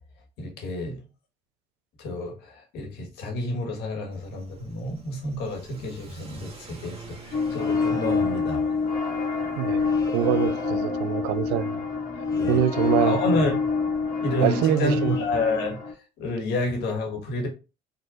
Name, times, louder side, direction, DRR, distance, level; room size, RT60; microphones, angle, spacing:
voice 1, 0.4-1.0 2.0-8.6 12.3-12.6 13.0-13.6 14.2-15.8 16.2-17.5, left 1 dB, 75° left, 1.7 m, -29 dB
Car / Accelerating revving vroom, 4.1-10.8, right 3 dB, 35° right, 1.6 m, -47 dB
sound 1, 7.3-15.9, left 4 dB, 50° left, 1.5 m, -26 dB
sound 2, 7.4-8.3 9.7-10.8 12.1-13.4 14.4-15.4, left 3 dB, 20° left, 1.3 m, -44 dB
voice 2, 9.6-11.7 12.5-13.2 14.4-15.2, right 11 dB, 90° right, 0.4 m, -25 dB
5.0 x 3.9 x 2.5 m
supercardioid pair, 85°, 17 cm